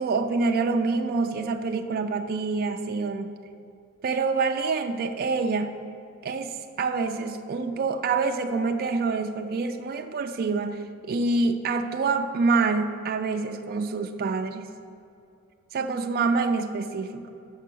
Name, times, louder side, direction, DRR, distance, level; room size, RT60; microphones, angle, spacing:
voice 1, 0.0-3.3 4.0-5.8 6.2-14.7 15.7-17.3, right 4 dB, 45° right, 6 dB, 0.3 m, -26 dB
6.6 x 5.6 x 6.1 m, 2.6 s
head